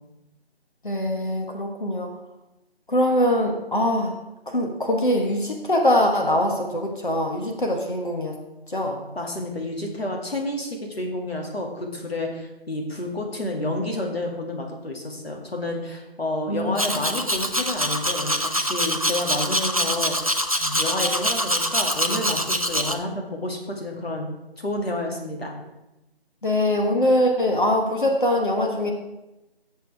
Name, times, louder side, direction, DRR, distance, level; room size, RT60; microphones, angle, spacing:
voice 1, 0.8-2.1 2.9-4.1 4.5-8.4 8.7-9.0 16.5-16.7 26.4-28.9, left 1 dB, 50° left, 2 dB, 1.4 m, -22 dB
voice 2, 9.2-24.3 24.6-25.6, left 1 dB, 70° left, 1 dB, 2.4 m, -30 dB
Domestic sounds home sounds, 16.7-22.9, equal, 35° right, 0.4 m, -24 dB
14.5 x 6.9 x 3.5 m, 0.98 s
figure-of-eight pair, 165°, 31 cm